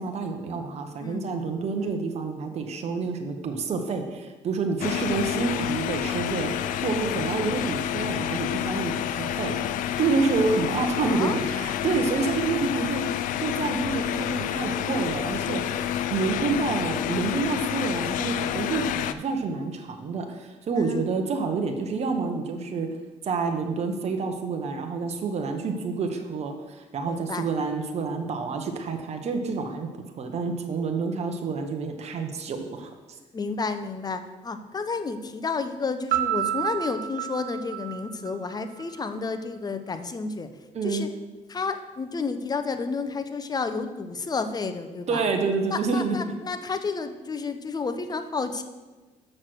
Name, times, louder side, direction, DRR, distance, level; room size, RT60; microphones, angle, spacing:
voice 1, 0.0-9.6 10.0-15.6 16.1-22.9 23.2-29.9 30.1-32.9 40.7-41.1 45.1-46.4, right 4 dB, 55° right, 5 dB, 1.1 m, -28 dB
sound 1, 4.8-19.1, left 11 dB, 85° left, 0.4 m, -29 dB
voice 2, 11.0-11.4 20.7-21.0 27.1-27.4 33.3-40.5 40.8-41.1 41.5-45.2 45.7-48.6, left 4 dB, 30° left, 9 dB, 0.8 m, -31 dB
Piano, 36.1-38.9, right 13 dB, 90° right, 0.6 m, -29 dB
6.5 x 6.4 x 6.2 m, 1.2 s
cardioid pair, 85°, 13 cm